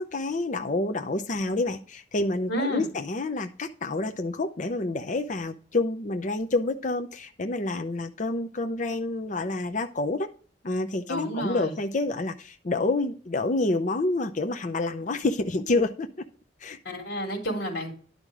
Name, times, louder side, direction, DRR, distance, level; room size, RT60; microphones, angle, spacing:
voice 1, 0.0-10.3 10.6-16.1 16.6-16.8, left 2 dB, 45° left, 6 dB, 0.7 m, -28 dB
voice 2, 2.5-2.8 11.1-11.7 16.9-17.9, equal, 70° left, 3 dB, 3.7 m, -30 dB
11.0 x 5.2 x 4.8 m, 0.42 s
head